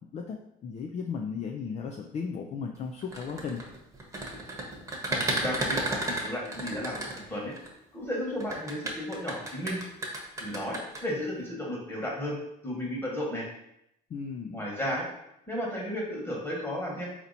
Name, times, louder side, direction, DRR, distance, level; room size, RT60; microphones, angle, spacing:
voice 1, 0.1-3.6 14.1-14.6, left 5 dB, 40° left, 2 dB, 0.4 m, -35 dB
sound 1, 3.0-7.7 8.4-11.0, right 2 dB, 15° right, 1.0 m, -32 dB
voice 2, 5.1-7.5 7.9-9.8 10.4-12.4 12.6-13.4 14.5-15.1 15.5-17.1, equal, 15° left, -3 dB, 1.4 m, -33 dB
4.3 x 2.9 x 4.0 m, 0.79 s
cardioid pair, 110°, 17 cm